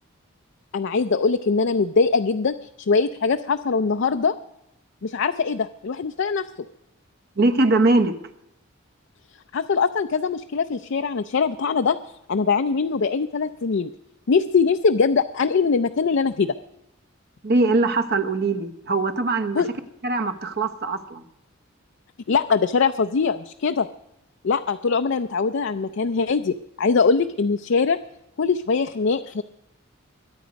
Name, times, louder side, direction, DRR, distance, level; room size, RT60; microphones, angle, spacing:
voice 1, 0.7-4.3 5.0-6.5 9.5-12.0 12.3-13.9 14.3-16.5 19.5-19.7 22.3-23.9 24.4-28.0 28.4-29.4, left 5 dB, 60° left, 8 dB, 0.5 m, -22 dB
voice 2, 7.4-8.2 17.4-19.6 20.0-21.2, right 2 dB, 55° right, 10 dB, 1.0 m, -21 dB
22.0 x 9.4 x 5.2 m, 0.85 s
head